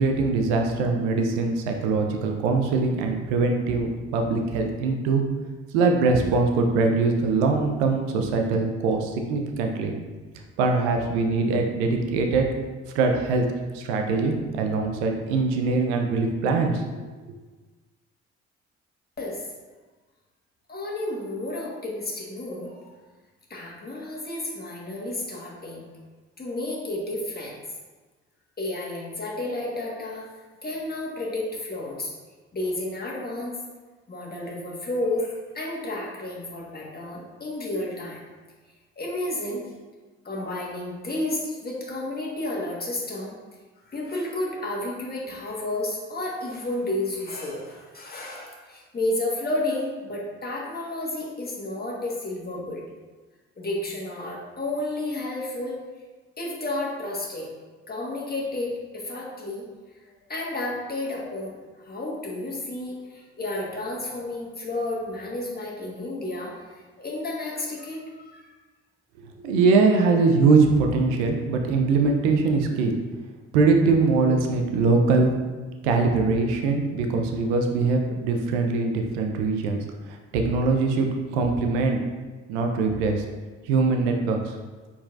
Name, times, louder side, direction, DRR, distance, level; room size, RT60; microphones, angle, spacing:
voice 1, 0.0-5.2 5.7-9.9 10.6-12.5 12.9-13.5 13.7-17.0 69.4-72.9 73.5-75.3 75.8-79.8 80.3-82.0 82.5-83.2 83.7-84.5, right 4 dB, 85° right, 3 dB, 0.6 m, -22 dB
voice 2, 20.7-22.9 23.5-25.8 26.4-27.5 28.6-30.2 30.6-32.1 32.5-33.6 34.1-38.2 39.0-39.7 40.2-43.3 43.8-52.8 53.6-55.8 56.4-57.5 57.9-59.7 60.0-68.5, left 1 dB, 30° left, -3 dB, 1.4 m, -31 dB
4.5 x 4.1 x 2.5 m, 1.3 s
hypercardioid pair, 50°, 34 cm